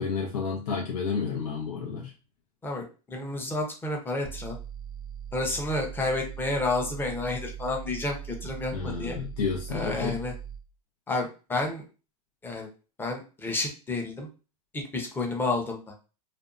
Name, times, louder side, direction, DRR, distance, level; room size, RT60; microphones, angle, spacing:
voice 1, 0.0-2.1 8.7-10.2, left 5 dB, 80° left, -1 dB, 0.7 m, -31 dB
voice 2, 2.6-4.6 5.3-9.2 9.7-10.3 11.1-11.8 12.4-12.7 13.0-14.3 14.7-16.1, left 2 dB, 10° left, 1 dB, 0.6 m, -30 dB
sound 1, 4.2-10.6, right 9 dB, 35° right, 0.5 m, -40 dB
2.6 x 2.2 x 2.4 m, 0.33 s
supercardioid pair, 130°, 20 cm